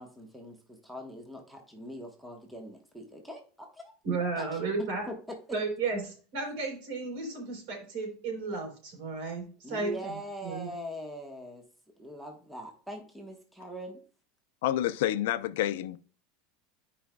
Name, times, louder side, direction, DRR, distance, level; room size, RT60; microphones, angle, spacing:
voice 1, 0.0-3.9 4.4-5.6 9.6-11.6 12.0-14.0, equal, ahead, 1.1 m, -42 dB
voice 2, 4.0-5.0 5.5-10.7, right 4 dB, 65° right, 3.8 m, -34 dB
voice 3, 14.6-16.0, left 13 dB, 80° left, 0.6 m, -28 dB
13.5 x 5.0 x 2.3 m
supercardioid pair, 160°, 0 cm